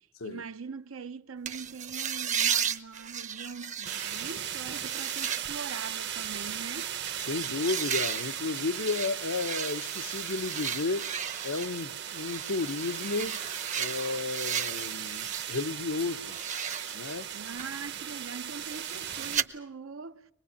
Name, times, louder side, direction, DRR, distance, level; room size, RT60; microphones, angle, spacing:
voice 1, 0.0-6.9 17.3-20.3, right 5 dB, 75° right, 0.9 m, -42 dB
sound 1, 1.4-15.7 16.0-19.4, right 8 dB, 35° right, 0.8 m, -36 dB
sound 2, 3.8-19.4, right 10 dB, 55° right, 1.1 m, -38 dB
voice 2, 7.3-11.1 11.4-13.5 13.7-16.4 16.9-17.3, left 3 dB, 85° left, 0.9 m, -33 dB
24.5 x 20.5 x 8.5 m
head